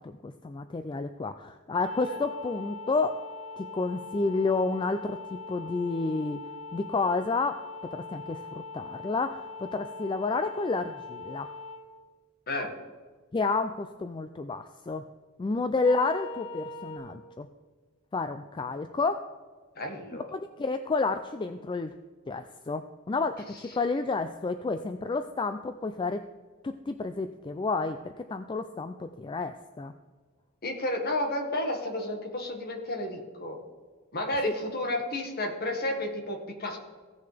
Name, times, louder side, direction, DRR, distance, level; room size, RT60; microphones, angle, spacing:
voice 1, 0.0-3.2 3.6-6.4 6.7-11.5 13.3-15.0 15.4-17.5 18.1-19.3 20.3-21.9 22.3-26.2 26.6-29.9 34.4-34.5, left 3 dB, 20° left, 9 dB, 0.3 m, -30 dB
sound 1, 1.8-11.8 15.8-17.0, left 3 dB, 85° left, 3.0 m, -41 dB
voice 2, 19.8-20.3 30.6-33.6 34.1-36.8, left 1 dB, 45° left, 2 dB, 1.7 m, -32 dB
16.5 x 6.6 x 3.4 m, 1.5 s
head